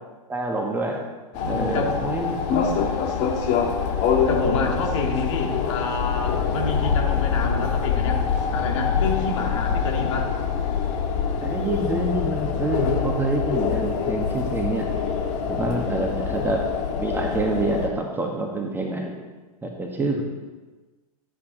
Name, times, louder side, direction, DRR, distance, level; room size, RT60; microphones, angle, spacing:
voice 1, 0.3-1.0 1.5-2.5 11.4-14.9 15.5-16.7 17.0-19.2 19.6-20.2, right 2 dB, 10° right, 1 dB, 1.6 m, -27 dB
sound 1, 1.3-17.9, left 6 dB, 40° left, 1.6 m, -25 dB
voice 2, 1.4-2.0 4.3-8.2 8.5-10.3, left 3 dB, 55° left, 1 dB, 2.3 m, -28 dB
13.0 x 8.7 x 4.0 m, 1.2 s
figure-of-eight pair, 100°, 19 cm